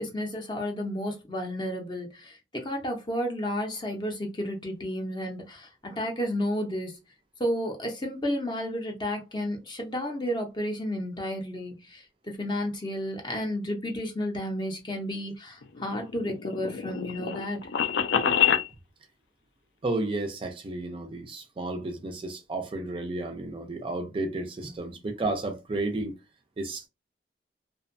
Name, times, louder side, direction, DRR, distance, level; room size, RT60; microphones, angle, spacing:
voice 1, 0.0-7.0 7.4-17.6 24.6-24.7, equal, 25° left, 0.5 m, -32 dB
sound 1, 15.6-18.7, left 8 dB, 80° left, 0.4 m, -26 dB
voice 2, 19.8-26.1 26.6-26.9, right 2 dB, 30° right, 0.4 m, -32 dB
2.5 x 2.1 x 2.5 m
head